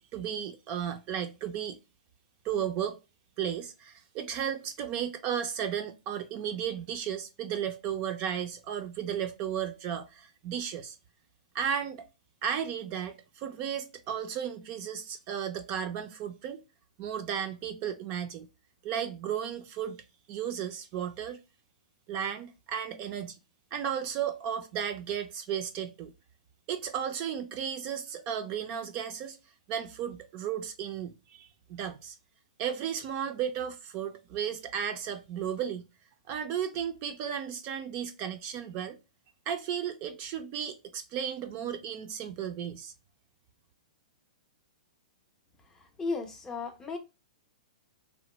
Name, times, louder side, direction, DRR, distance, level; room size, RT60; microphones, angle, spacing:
voice 1, 0.0-1.8 2.4-3.0 3.4-11.0 11.5-12.0 12.4-16.6 17.0-18.5 18.8-20.0 20.3-21.4 22.1-23.4 23.7-26.1 26.7-29.4 29.7-32.2 32.6-35.9 36.3-39.0 39.5-42.9, right 8 dB, 35° right, 0.4 m, -34 dB
voice 2, 45.7-47.0, left 4 dB, 15° left, 0.5 m, -35 dB
2.9 x 2.0 x 3.0 m
hypercardioid pair, 135°, 4 cm